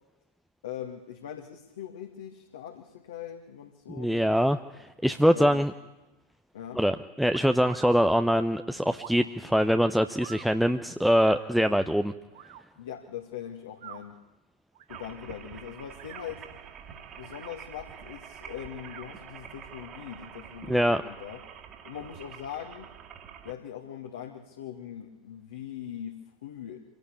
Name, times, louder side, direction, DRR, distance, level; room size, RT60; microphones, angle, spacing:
voice 1, 0.6-4.3 5.3-5.6 6.5-6.8 12.8-14.1 14.9-16.5 17.2-21.4 21.8-22.9 23.4-26.8, left 10 dB, 60° left, 3 dB, 2.2 m, -41 dB
voice 2, 3.9-5.7 6.7-12.1 20.7-21.0, equal, ahead, 8 dB, 0.8 m, -24 dB
sound 1, 7.3-8.0 8.9-9.3 10.2-10.5 11.2-11.4 12.3-12.6 13.7-14.0 14.7-15.0 15.9-16.3 17.2-17.5 18.8-19.1, right 11 dB, 55° right, 2.3 m, -45 dB
sound 2, 14.9-23.5, right 8 dB, 30° right, 2.6 m, -46 dB
25.5 x 17.5 x 8.7 m, 1.0 s
figure-of-eight pair, 90°, 0 cm